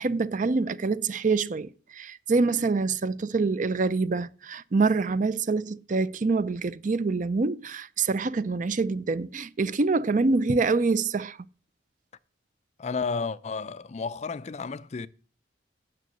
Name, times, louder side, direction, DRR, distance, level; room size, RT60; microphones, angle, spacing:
voice 1, 0.0-11.4, right 3 dB, 40° right, 0.5 m, -26 dB
voice 2, 12.8-15.1, left 4 dB, 35° left, 0.4 m, -32 dB
9.3 x 6.2 x 7.6 m
head